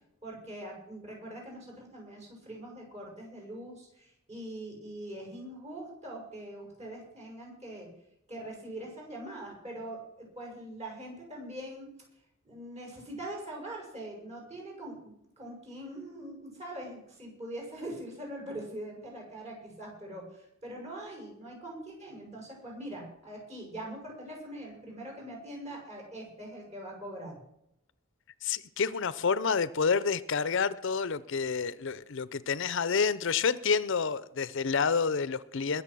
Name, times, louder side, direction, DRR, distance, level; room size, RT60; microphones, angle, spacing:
voice 1, 0.2-7.9 8.3-11.9 12.4-27.3, right 1 dB, 35° right, -1 dB, 6.6 m, -42 dB
voice 2, 28.4-35.8, left 5 dB, 65° left, 17 dB, 0.6 m, -29 dB
21.5 x 7.2 x 6.1 m, 0.80 s
head